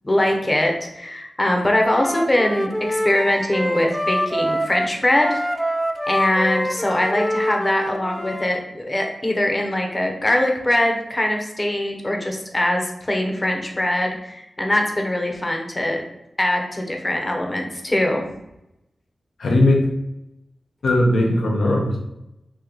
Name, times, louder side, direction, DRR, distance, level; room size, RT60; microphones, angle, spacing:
voice 1, 0.0-5.4 6.1-16.0 16.4-18.2, left 1 dB, 25° left, 2 dB, 0.8 m, -22 dB
Wind instrument woodwind instrument, 1.9-8.5, equal, ahead, 0.3 m, -25 dB
voice 2, 19.4-19.9 20.8-22.0, left 1 dB, 80° left, -1 dB, 0.7 m, -18 dB
3.0 x 2.8 x 3.8 m, 0.87 s
cardioid pair, 60°, 0 cm